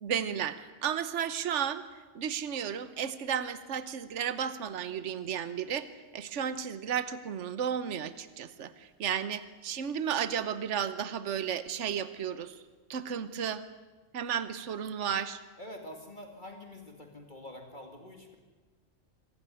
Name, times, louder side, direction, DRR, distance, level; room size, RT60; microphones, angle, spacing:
voice 1, 0.0-1.8 2.1-5.9 6.1-12.6 12.9-13.6 14.1-15.4, right 8 dB, 70° right, 13 dB, 1.3 m, -33 dB
voice 2, 15.6-18.4, left 1 dB, 40° left, 3 dB, 2.5 m, -46 dB
24.5 x 15.5 x 9.9 m, 1.3 s
omnidirectional pair, 1.3 m